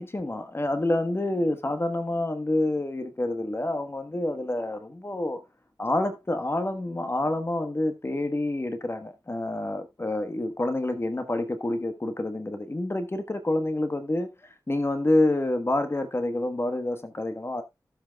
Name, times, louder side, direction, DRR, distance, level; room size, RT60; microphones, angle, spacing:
voice 1, 0.0-5.4 5.8-17.6, left 1 dB, 35° left, 1.3 m, -28 dB
14.5 x 7.7 x 2.3 m
wide cardioid pair, 60°, 8 cm